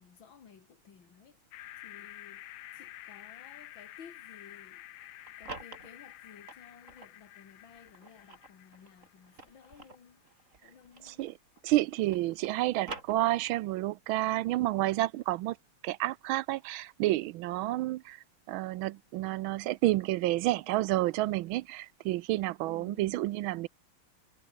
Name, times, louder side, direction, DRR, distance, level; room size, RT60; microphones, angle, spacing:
voice 1, 0.0-1.4 1.8-2.4 2.7-4.9 5.4-10.2 10.6-11.3 22.7-23.1, left 7 dB, 60° left, 2.8 m, -55 dB
sound 1, 1.5-9.7, left 15 dB, 75° left, 1.5 m, -50 dB
sound 2, 5.0-7.2 7.7-11.5 11.8-13.7, right 3 dB, 35° right, 3.7 m, -48 dB
voice 2, 11.6-15.6 15.8-18.2 18.5-23.7, right 16 dB, 75° right, 1.3 m, -30 dB
omnidirectional pair, 2.4 m